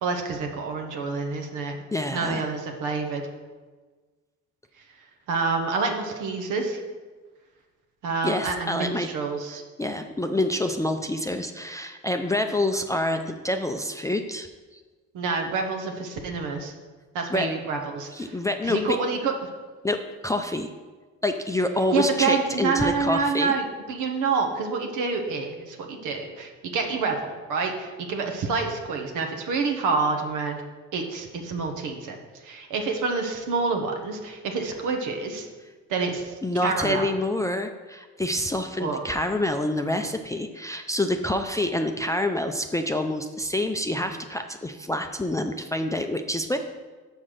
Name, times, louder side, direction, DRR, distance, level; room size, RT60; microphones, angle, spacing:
voice 1, 0.0-1.8 2.1-3.2 5.3-6.8 8.0-9.6 15.1-16.7 17.1-18.3 18.6-19.5 21.9-30.6 30.9-32.2 32.4-35.5 35.9-36.3 36.6-37.0 38.8-39.0, right 4 dB, 85° right, 3 dB, 1.0 m, -27 dB
voice 2, 1.9-2.5 8.2-9.1 9.8-14.5 14.7-14.8 17.3-17.5 18.1-18.8 19.8-20.7 21.2-23.5 36.4-46.6, left 1 dB, 10° left, 5 dB, 0.4 m, -27 dB
5.8 x 5.2 x 6.4 m, 1.3 s
cardioid pair, 90°, 30 cm